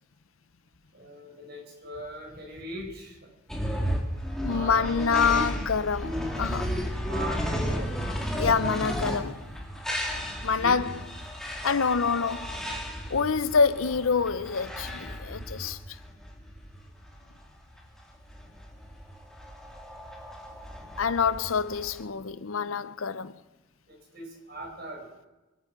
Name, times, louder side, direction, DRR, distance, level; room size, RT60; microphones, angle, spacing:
voice 1, 0.9-3.2 4.5-5.0 7.0-7.9 10.6-10.8 23.9-25.1, right 1 dB, 50° right, 5.3 m, -40 dB
sound 1, 3.5-22.0, equal, ahead, 2.1 m, -34 dB
voice 2, 4.4-6.7 8.4-9.4 10.4-11.0 11.6-12.6 13.1-15.8 21.0-23.4, left 5 dB, 90° left, 0.7 m, -26 dB
25.0 x 9.4 x 6.1 m
head